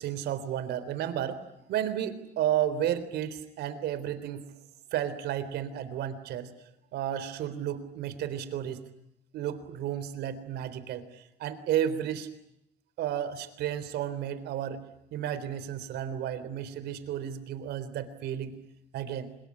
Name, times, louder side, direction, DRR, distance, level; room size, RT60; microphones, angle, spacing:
voice 1, 0.0-1.4 1.7-4.5 4.9-6.5 6.9-8.8 9.3-12.3 13.0-14.8 15.1-18.5 18.9-19.3, right 10 dB, 75° right, 13 dB, 3.8 m, -32 dB
26.0 x 22.0 x 10.0 m, 0.79 s
cardioid pair, 110°, 17 cm